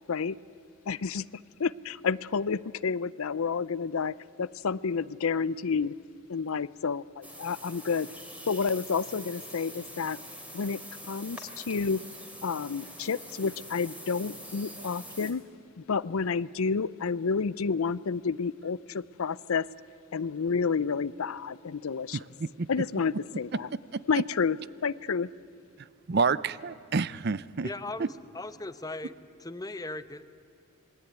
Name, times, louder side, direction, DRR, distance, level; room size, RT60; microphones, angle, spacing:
voice 1, 0.9-1.3 1.6-5.9 6.3-8.1 8.5-10.2 10.5-12.0 12.4-15.4 15.8-19.7 20.1-22.2 22.7-23.7 24.1-24.6 24.8-25.3, left 5 dB, 75° left, 19 dB, 0.5 m, -30 dB
sound 1, 7.2-15.3, equal, 5° right, 3.1 m, -44 dB
voice 2, 22.1-22.7 23.9-24.0 26.1-27.7 28.0-28.1, right 4 dB, 50° right, 18 dB, 0.5 m, -29 dB
voice 3, 27.6-29.1 29.4-30.3, left 2 dB, 15° left, 12 dB, 0.8 m, -38 dB
27.0 x 21.0 x 9.4 m, 2.7 s
head